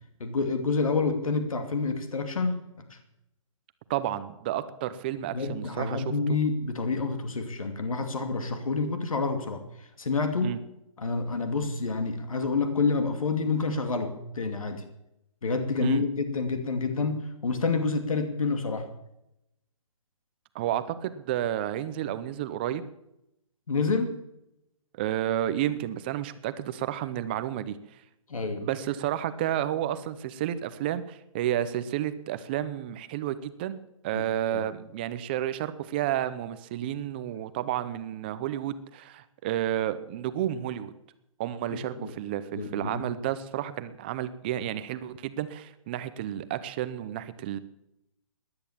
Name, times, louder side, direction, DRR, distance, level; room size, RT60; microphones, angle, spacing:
voice 1, 0.2-3.0 5.3-10.5 11.0-14.8 15.4-18.9 23.7-24.2 28.3-28.7 34.1-34.2 34.5-34.6 42.0-42.1 42.5-43.1, left 4 dB, 75° left, 7 dB, 2.6 m, -28 dB
voice 2, 3.9-6.0 10.4-10.6 15.8-16.0 20.5-22.8 24.9-27.8 28.6-40.9 41.4-47.6, right 12 dB, 20° right, 13 dB, 0.6 m, -31 dB
17.5 x 11.0 x 7.3 m, 0.85 s
hypercardioid pair, 165°, 18 cm